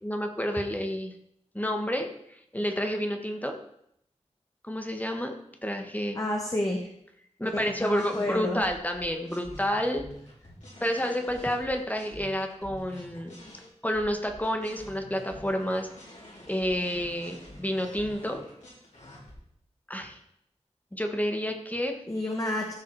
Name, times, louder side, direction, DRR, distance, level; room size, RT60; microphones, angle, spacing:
voice 1, 0.0-1.1 1.5-2.1 2.5-3.5 4.6-5.3 5.6-6.2 7.4-10.1 10.8-13.4 13.8-15.9 16.5-18.4 19.9-20.2 20.9-22.0, equal, 15° left, 4 dB, 1.5 m, -29 dB
voice 2, 6.2-6.9 7.4-8.6 22.1-22.7, left 1 dB, 30° left, 0 dB, 1.7 m, -30 dB
sound 1, 7.9-13.6 13.9-19.3, left 1 dB, 75° left, 5.2 m, -47 dB
15.0 x 6.0 x 4.8 m, 0.73 s
wide cardioid pair, 60°, 12 cm